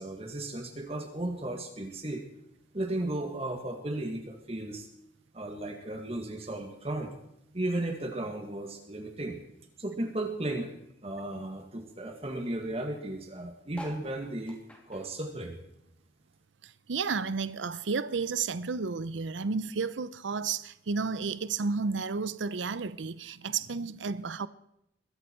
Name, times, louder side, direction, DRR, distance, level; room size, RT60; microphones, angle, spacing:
voice 1, 0.0-2.2 2.7-4.9 5.3-7.1 7.5-9.4 9.8-10.7 11.0-15.6, right 1 dB, 35° right, 1.9 m, -35 dB
sound 1, 13.7-16.5 16.8-18.3 18.8-18.9 19.1-19.2 19.4-19.8 20.5-20.6, equal, 5° left, 2.9 m, -50 dB
voice 2, 16.6-24.5, right 4 dB, 90° right, 0.6 m, -32 dB
22.0 x 13.5 x 4.6 m
head